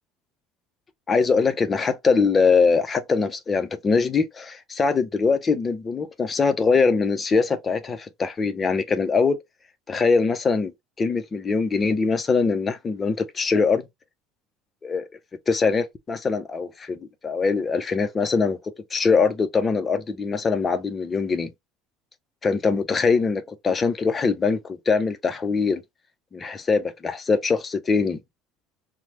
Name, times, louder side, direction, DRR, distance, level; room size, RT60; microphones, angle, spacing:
voice 1, 1.1-9.4 9.9-10.7 11.0-13.8 14.8-15.0 15.5-17.0 17.2-18.6 18.9-21.5 22.4-25.8 26.3-28.2, left 4 dB, 25° left, 0.5 m, -22 dB
3.0 x 2.0 x 2.9 m
supercardioid pair, 110°, 0 cm